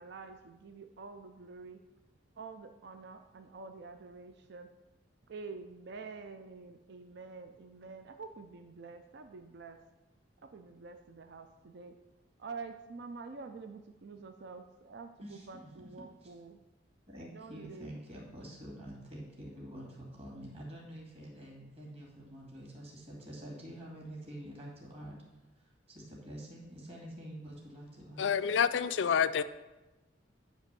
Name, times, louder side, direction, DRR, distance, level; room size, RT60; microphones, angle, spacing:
voice 1, 0.0-1.8 2.4-4.7 5.3-9.8 10.4-12.0 12.4-16.6 17.2-17.9, right 4 dB, 65° right, 7 dB, 0.5 m, -47 dB
voice 2, 15.2-15.9 16.2-16.3 17.1-25.2 25.6-28.3, equal, 35° right, -2 dB, 2.3 m, -47 dB
voice 3, 28.2-29.4, left 7 dB, 75° left, 13 dB, 0.4 m, -28 dB
9.8 x 3.4 x 6.8 m, 1.1 s
head